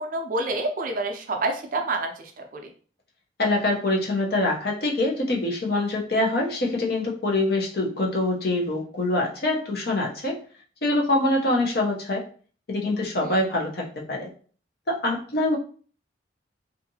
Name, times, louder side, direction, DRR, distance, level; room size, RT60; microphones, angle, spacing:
voice 1, 0.0-2.6 13.2-13.4, right 2 dB, 45° right, 4 dB, 0.4 m, -28 dB
voice 2, 3.4-10.4 10.8-12.2 12.7-14.3 14.9-15.6, left 2 dB, 55° left, -1 dB, 0.6 m, -24 dB
2.7 x 2.4 x 2.7 m, 0.43 s
head